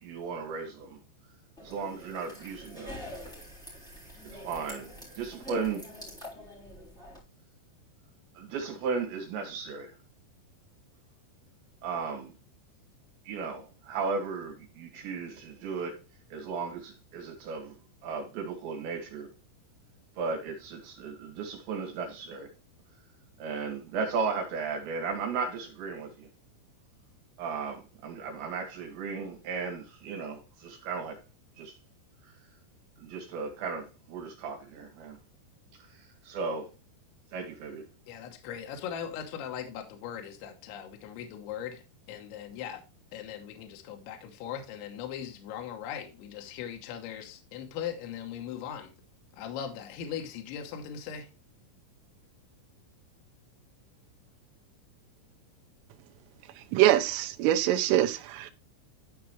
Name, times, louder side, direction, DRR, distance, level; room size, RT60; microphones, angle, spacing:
voice 1, 0.0-1.0 1.6-3.0 4.3-5.8 8.4-9.9 11.8-12.3 13.3-16.0 16.3-17.8 18.0-19.3 20.2-22.5 23.4-26.3 27.4-31.2 31.6-31.8 32.2-32.3 33.0-35.2 35.9-36.7 37.3-37.9, right 5 dB, 70° right, 4.1 m, -35 dB
sound 1, 1.6-7.2, equal, ahead, 3.1 m, -45 dB
voice 2, 38.1-41.8 42.1-42.8 43.1-48.9 49.4-51.3, left 9 dB, 75° left, 3.4 m, -39 dB
voice 3, 56.7-58.5, right 13 dB, 90° right, 3.4 m, -24 dB
13.5 x 4.7 x 3.2 m
omnidirectional pair, 5.6 m